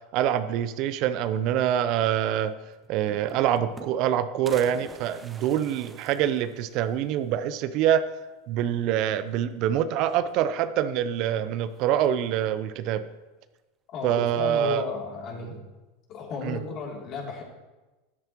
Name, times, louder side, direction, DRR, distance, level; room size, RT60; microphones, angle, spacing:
voice 1, 0.1-2.5 2.9-8.0 8.5-13.0 14.0-14.8 16.4-16.6, right 10 dB, 55° right, 12 dB, 0.6 m, -25 dB
sound 1, 2.5-2.6 2.8-4.1 4.5-7.1 7.5-7.6 7.8-7.9 9.1-9.6 9.9-10.7 11.7-12.3, right 4 dB, 20° right, 0.9 m, -48 dB
voice 2, 13.9-15.7 16.1-17.4, left 4 dB, 45° left, -1 dB, 2.9 m, -34 dB
13.0 x 8.8 x 3.0 m, 1.1 s
hypercardioid pair, 95°, 0 cm